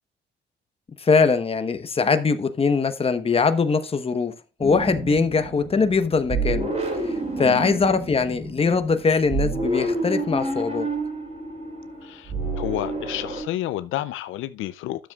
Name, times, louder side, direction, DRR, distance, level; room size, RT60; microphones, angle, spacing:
voice 1, 1.0-4.3 4.6-6.7 7.0-10.9, left 4 dB, 30° left, 1.1 m, -22 dB
sound 1, 4.6-13.4, right 2 dB, 35° right, 4.4 m, -29 dB
voice 2, 7.4-7.7 12.0-15.1, left 13 dB, 85° left, 0.5 m, -31 dB
12.5 x 7.2 x 2.4 m
cardioid pair, 90°, 20 cm